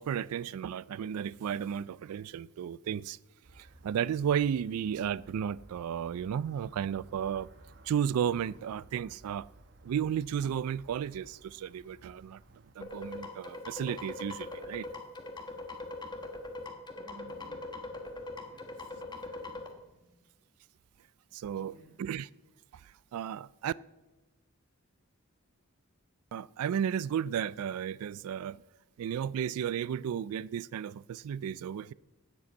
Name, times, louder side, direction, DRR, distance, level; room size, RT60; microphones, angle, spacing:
voice 1, 0.0-3.2 3.6-7.5 7.9-9.5 9.8-12.4 12.8-14.9 21.3-21.7 22.0-22.3 23.1-23.7 26.3-28.6 29.0-31.9, right 8 dB, 80° right, 0.3 m, -33 dB
sound 1, 3.4-12.7, right 2 dB, 50° right, 1.0 m, -57 dB
sound 2, 12.8-19.7, left 2 dB, 20° left, 1.3 m, -41 dB
voice 2, 16.6-20.3 21.4-22.1, right 1 dB, 35° right, 2.0 m, -58 dB
11.0 x 7.8 x 8.3 m
head